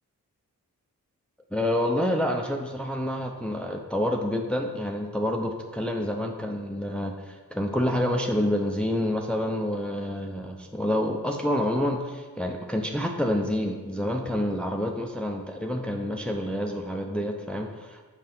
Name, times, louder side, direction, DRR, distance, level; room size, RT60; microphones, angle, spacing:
voice 1, 1.5-18.0, left 1 dB, 5° left, 2 dB, 0.6 m, -28 dB
5.6 x 4.1 x 5.9 m, 1.4 s
cardioid pair, 55°, 34 cm